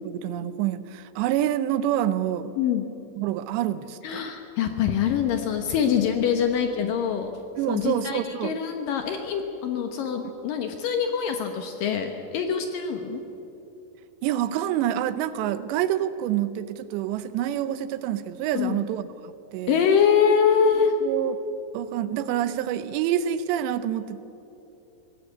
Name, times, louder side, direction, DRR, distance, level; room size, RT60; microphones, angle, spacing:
voice 1, 0.0-2.6 3.2-4.2 7.6-8.6 14.2-19.8 20.8-21.4 21.7-24.2, right 11 dB, 80° right, 13 dB, 2.7 m, -27 dB
voice 2, 2.6-2.9 4.0-7.3 7.7-13.2 18.5-18.9 19.7-20.9, left 7 dB, 75° left, 5 dB, 2.1 m, -24 dB
21.5 x 18.0 x 8.2 m, 2.9 s
omnidirectional pair, 5.4 m